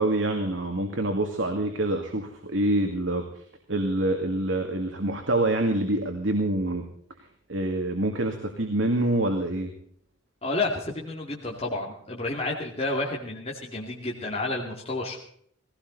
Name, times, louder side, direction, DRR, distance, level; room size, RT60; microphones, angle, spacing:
voice 1, 0.0-3.4 3.7-6.8 7.5-9.7, right 1 dB, 65° right, 3 dB, 2.2 m, -26 dB
voice 2, 10.4-15.2, left 2 dB, 30° left, -1 dB, 2.5 m, -30 dB
19.0 x 17.5 x 4.1 m, 0.63 s
head